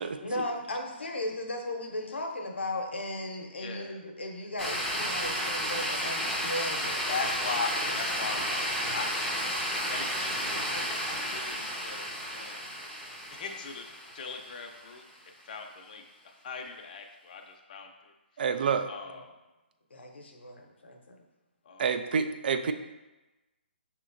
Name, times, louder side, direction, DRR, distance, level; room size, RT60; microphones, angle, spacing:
voice 1, 0.0-7.1 19.1-19.2 19.9-21.2, left 1 dB, 80° left, 3 dB, 0.8 m, -36 dB
voice 2, 3.5-4.0 7.0-9.2 9.8-12.6 13.3-18.4 18.9-19.3 21.6-22.1, left 4 dB, 45° left, 3 dB, 0.6 m, -40 dB
sound 1, 4.6-14.9, equal, ahead, 0.6 m, -32 dB
voice 3, 18.4-18.9 21.8-22.7, right 6 dB, 55° right, 8 dB, 0.3 m, -27 dB
5.7 x 2.9 x 2.5 m, 1.1 s
figure-of-eight pair, 145°, 6 cm